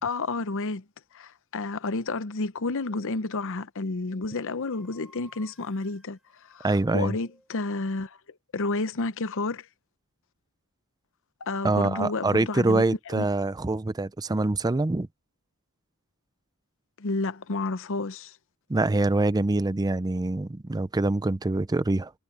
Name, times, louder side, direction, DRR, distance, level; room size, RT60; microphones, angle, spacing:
voice 1, 0.0-0.8 1.1-6.2 6.5-8.2 8.5-9.7 11.4-12.9 13.1-13.2 17.0-18.3, left 3 dB, 60° left, 0.8 m, -30 dB
sound 1, 2.9-3.3 4.1-7.5, equal, ahead, 5.3 m, -58 dB
voice 2, 6.6-7.2 11.6-15.1 18.7-22.1, right 2 dB, 15° right, 0.5 m, -25 dB
head